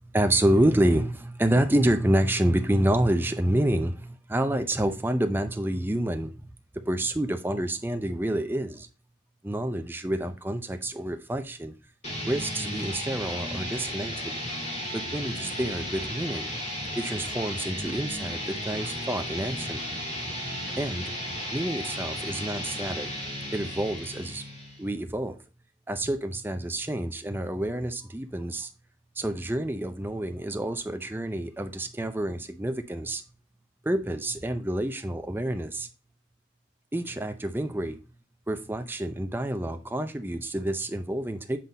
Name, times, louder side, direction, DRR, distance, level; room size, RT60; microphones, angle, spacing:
voice 1, 0.1-6.5 6.8-8.9 9.4-11.7 12.2-14.4 14.9-16.5 16.9-19.8 20.8-21.2 21.5-23.1 23.5-24.4 24.8-25.4 25.9-28.7 29.2-33.2 33.8-35.9 36.9-38.0 38.5-41.6, right 1 dB, 10° right, 0.5 m, -28 dB
sound 1, 12.0-24.9, equal, 35° left, 2.1 m, -34 dB
7.5 x 3.9 x 4.0 m
head